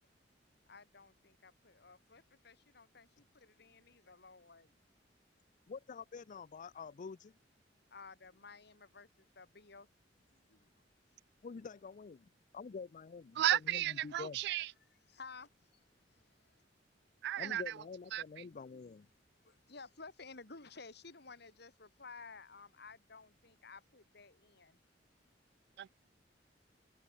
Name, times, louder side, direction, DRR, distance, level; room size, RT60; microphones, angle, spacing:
voice 1, 0.7-4.7 7.9-9.9 10.3-10.7 15.1-15.7 16.1-16.6 18.7-18.9 19.4-24.8, left 4 dB, 65° left, 3.0 m, -55 dB
voice 2, 5.7-7.3 11.4-12.3 12.5-14.4 17.4-19.1, left 5 dB, 45° left, 0.4 m, -47 dB
voice 3, 13.4-14.7 17.2-17.7 18.1-18.2 25.8-26.0, right 12 dB, 65° right, 0.3 m, -34 dB
head